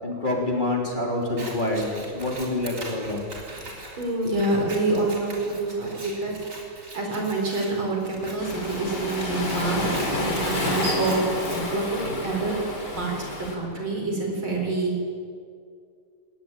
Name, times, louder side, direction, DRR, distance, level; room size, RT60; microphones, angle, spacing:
voice 1, 0.0-3.3, left 2 dB, 20° left, -1 dB, 3.6 m, -27 dB
Scissors, 1.2-11.6, right 2 dB, 40° right, 4.1 m, -41 dB
voice 2, 4.0-6.4 6.9-12.5 13.0-13.3 13.5-15.0, right 2 dB, 75° right, 1 dB, 5.2 m, -27 dB
Waves surf, 8.4-13.5, left 1 dB, 55° left, 4.2 m, -29 dB
20.5 x 18.5 x 9.0 m, 2.3 s
omnidirectional pair, 2.3 m